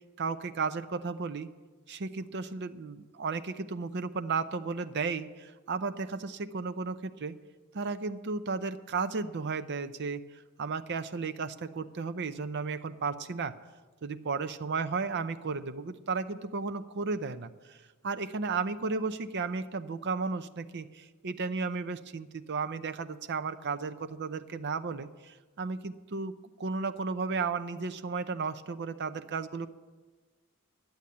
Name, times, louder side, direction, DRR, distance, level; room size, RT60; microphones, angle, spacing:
voice 1, 0.2-1.5 1.9-7.3 7.7-13.5 14.0-17.8 18.0-29.7, right 4 dB, 55° right, 10 dB, 0.6 m, -34 dB
11.5 x 8.0 x 8.5 m, 1.3 s
head